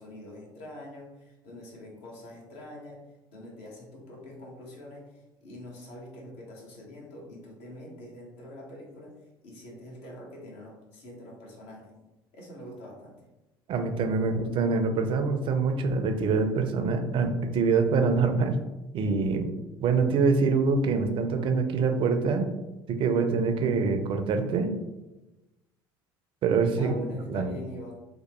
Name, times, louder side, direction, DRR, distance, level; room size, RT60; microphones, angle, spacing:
voice 1, 0.0-3.0 3.3-9.1 9.4-11.9 12.3-13.2 26.8-27.9, equal, 60° left, -2 dB, 0.9 m, -44 dB
voice 2, 13.7-18.6 18.9-19.5 19.8-22.5 22.9-24.7 26.4-26.9 27.3-27.5, right 4 dB, 45° right, 6 dB, 0.4 m, -25 dB
2.8 x 2.0 x 2.9 m, 1.0 s
hypercardioid pair, 65°, 12 cm